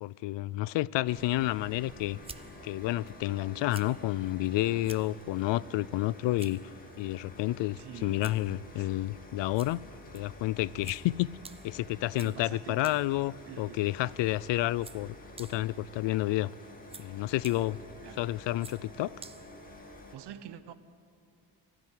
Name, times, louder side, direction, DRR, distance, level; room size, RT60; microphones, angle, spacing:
voice 1, 0.0-2.2 2.6-6.6 7.0-9.8 10.1-11.4 11.6-16.5 17.0-17.8 18.2-19.1, left 16 dB, 85° left, 0.5 m, -30 dB
sound 1, 1.0-20.2, left 1 dB, 20° left, 2.4 m, -50 dB
sound 2, 1.8-20.1, right 4 dB, 15° right, 0.4 m, -54 dB
voice 2, 7.8-8.3 8.7-8.9 12.2-12.9 13.5-13.8 18.0-18.2 20.1-20.7, right 10 dB, 70° right, 1.1 m, -46 dB
19.5 x 14.5 x 9.3 m
cardioid pair, 140°, 42 cm